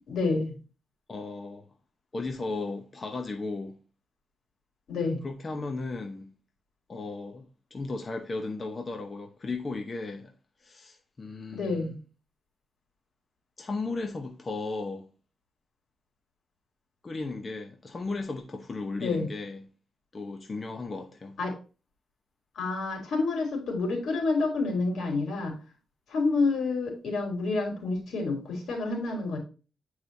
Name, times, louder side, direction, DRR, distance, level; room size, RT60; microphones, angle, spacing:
voice 1, 0.1-0.5 4.9-5.2 11.5-12.0 19.0-19.3 21.4-21.6 22.5-25.6 26.1-29.4, left 3 dB, 80° left, 3.1 m, -28 dB
voice 2, 1.1-1.7 2.1-3.7 5.2-6.3 6.9-7.4 7.7-10.3 10.6-12.0 13.6-15.1 17.0-19.6 20.1-21.4, left 3 dB, 30° left, 0.8 m, -35 dB
8.8 x 4.8 x 2.7 m
wide cardioid pair, 140°, 0 cm